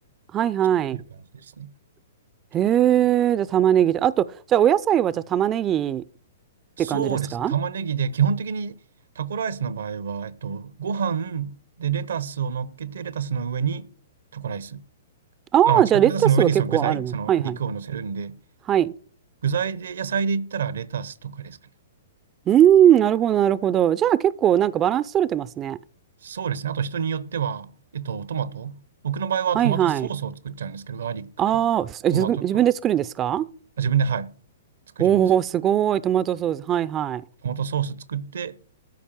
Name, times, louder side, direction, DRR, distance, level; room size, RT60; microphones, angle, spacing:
voice 1, 0.3-1.0 2.5-6.0 6.8-7.5 15.5-16.1 16.4-17.6 18.7-18.9 22.5-25.8 29.5-30.1 31.4-33.5 35.0-37.2, right 10 dB, 25° right, 0.5 m, -20 dB
voice 2, 1.3-1.7 6.8-8.8 9.2-13.9 14.3-14.8 15.7-18.4 19.4-21.6 26.2-28.8 29.0-31.7 32.1-32.7 33.8-34.3 35.0-35.3 37.4-38.6, right 7 dB, 75° right, 1.0 m, -27 dB
13.5 x 5.3 x 8.7 m
hypercardioid pair, 125°, 0 cm